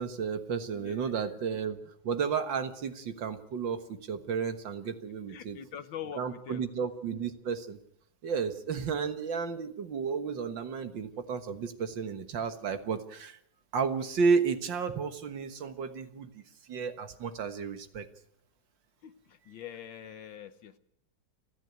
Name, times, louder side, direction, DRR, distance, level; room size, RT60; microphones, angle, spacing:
voice 1, 0.0-5.6 6.2-7.8 8.2-13.4 13.7-16.4 16.7-18.1, right 5 dB, 65° right, 9 dB, 2.1 m, -32 dB
voice 2, 0.7-1.4 5.3-6.7 19.0-20.8, left 9 dB, 70° left, 12 dB, 1.7 m, -44 dB
29.5 x 10.5 x 9.2 m, 0.71 s
omnidirectional pair, 2.3 m